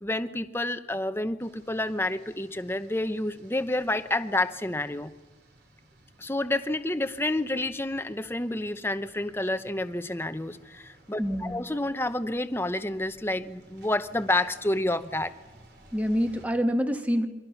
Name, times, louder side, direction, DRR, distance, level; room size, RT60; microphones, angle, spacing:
voice 1, 0.0-5.1 6.2-15.3, left 1 dB, 15° left, 10 dB, 0.8 m, -29 dB
sound 1, 1.4-16.5, right 1 dB, 70° right, 3.6 m, -57 dB
voice 2, 11.2-11.6 15.9-17.3, equal, 10° right, 5 dB, 1.5 m, -26 dB
29.5 x 24.0 x 5.8 m, 1.2 s
head